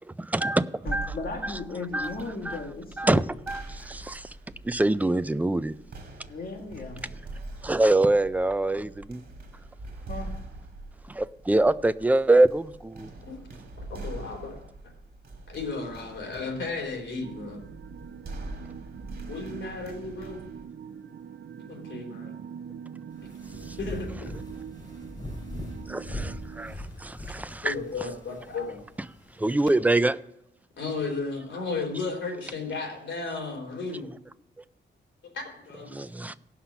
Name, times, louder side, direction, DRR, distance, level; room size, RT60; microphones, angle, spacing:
voice 1, 0.0-1.1 1.4-1.6 1.9-2.2 2.5-2.6 3.0-4.3 4.6-5.8 7.6-9.2 11.1-13.1 23.6-23.8 25.9-27.7 29.4-30.2 35.9-36.3, right 2 dB, 10° right, 0.3 m, -25 dB
sound 1, 0.8-20.6, right 2 dB, 55° right, 2.1 m, -43 dB
voice 2, 0.9-3.2 6.2-7.0 10.1-10.3, left 3 dB, 50° left, 1.6 m, -36 dB
voice 3, 13.9-14.6 15.5-17.6 19.3-20.4 21.7-22.3 23.8-24.3 27.6-28.8 30.8-34.1 35.2-36.0, left 3 dB, 75° left, 3.4 m, -34 dB
sound 2, 17.2-26.8, right 7 dB, 70° right, 0.5 m, -43 dB
sound 3, 23.1-29.5, left 1 dB, 20° left, 4.4 m, -40 dB
17.0 x 5.8 x 5.8 m
wide cardioid pair, 160°, 19 cm